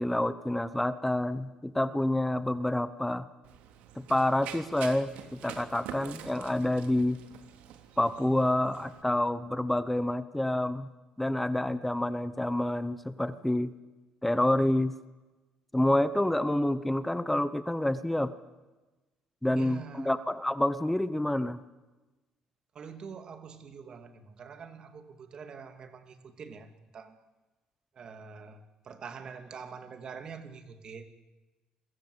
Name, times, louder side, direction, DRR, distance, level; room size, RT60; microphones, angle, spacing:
voice 1, 0.0-3.2 4.0-7.2 8.0-10.9 11.2-13.7 14.2-14.9 15.7-18.3 19.4-21.6, left 1 dB, 5° left, 13 dB, 1.0 m, -28 dB
Run, 3.4-9.0, right 9 dB, 80° right, 3.1 m, -46 dB
voice 2, 19.6-20.2 22.7-27.2 27.9-31.1, right 6 dB, 35° right, 8 dB, 2.8 m, -45 dB
29.0 x 23.5 x 8.2 m, 1.1 s
cardioid pair, 155°, 2 cm